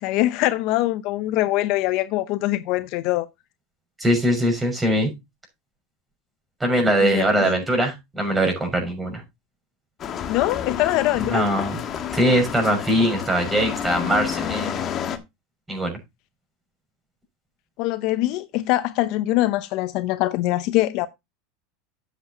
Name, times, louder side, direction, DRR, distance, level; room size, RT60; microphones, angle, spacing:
voice 1, 0.0-3.3 7.0-7.6 10.3-11.4 17.8-21.1, left 16 dB, 55° left, 0.7 m, -23 dB
voice 2, 4.0-5.1 6.6-9.2 11.3-11.7 12.1-14.8 15.7-16.0, right 1 dB, 10° right, 6.2 m, -21 dB
sound 1, 10.0-15.2, left 8 dB, 35° left, 1.6 m, -30 dB
11.5 x 8.2 x 2.8 m
supercardioid pair, 120°, 0 cm